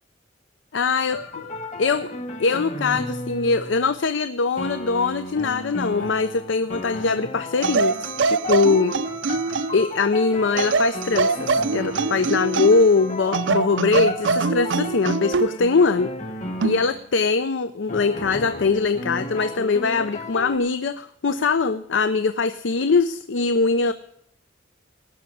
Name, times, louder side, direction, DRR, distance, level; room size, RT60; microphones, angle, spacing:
voice 1, 0.7-1.4 1.8-2.1 2.4-9.0 9.7-16.1 16.6-23.9, left 4 dB, 80° left, 12 dB, 0.6 m, -22 dB
sound 1, 1.1-3.9 4.6-17.0 17.9-20.6, left 1 dB, 40° left, 1.7 m, -34 dB
sound 2, 7.6-9.9 10.6-12.9 13.3-15.5 16.6-16.9, right 4 dB, 75° right, 0.5 m, -23 dB
18.0 x 6.0 x 9.9 m, 0.71 s
head